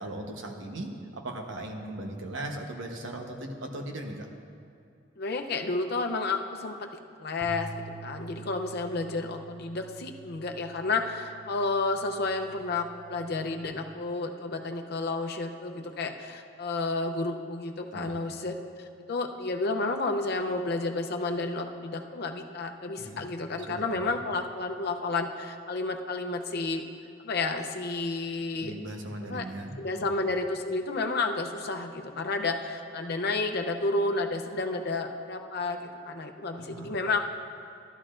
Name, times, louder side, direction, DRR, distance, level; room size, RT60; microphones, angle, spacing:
voice 1, 0.0-4.3 17.9-18.1 23.0-23.3 23.7-24.1 28.6-30.1 36.6-37.0, right 1 dB, 80° right, 2 dB, 1.1 m, -38 dB
voice 2, 5.2-6.9 7.2-7.7 8.0-26.8 27.2-28.7 29.3-29.4 29.8-37.2, left 3 dB, 55° left, 4 dB, 0.7 m, -31 dB
sound 1, 7.4-13.7, right 4 dB, 20° right, 0.8 m, -47 dB
14.5 x 12.0 x 2.5 m, 2.4 s
head